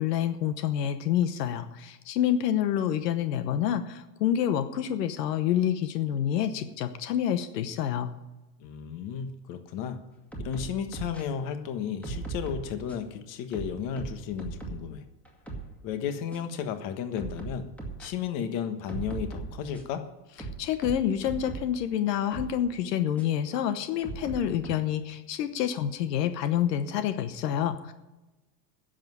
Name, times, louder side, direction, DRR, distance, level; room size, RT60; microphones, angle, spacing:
voice 1, 0.0-8.1 20.6-27.9, left 10 dB, 75° left, 10 dB, 1.2 m, -28 dB
voice 2, 8.6-10.0 10.4-15.0 15.8-17.7 18.0-20.0, left 8 dB, 40° left, 8 dB, 1.4 m, -33 dB
sound 1, 10.3-11.2 12.0-13.1 13.5-14.9 15.3-15.7 16.3-16.4 17.2-18.1 18.9-20.0 20.4-21.7 22.3-22.5 23.2-23.3 24.0-24.7, right 3 dB, 5° left, 2.1 m, -38 dB
10.5 x 7.8 x 9.6 m, 1.0 s
supercardioid pair, 150°, 49 cm